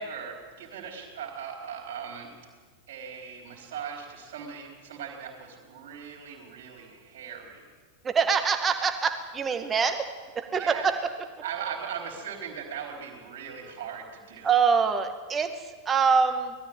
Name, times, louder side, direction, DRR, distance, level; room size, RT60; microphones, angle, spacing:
voice 1, 0.0-2.3 2.9-7.7 10.5-10.9 11.4-14.6, right 7 dB, 55° right, 0 dB, 4.2 m, -39 dB
voice 2, 8.0-10.1 10.3-11.1 14.4-16.5, right 6 dB, 20° right, 7 dB, 2.1 m, -25 dB
20.0 x 13.5 x 9.4 m, 1.5 s
figure-of-eight pair, 90°, 0 cm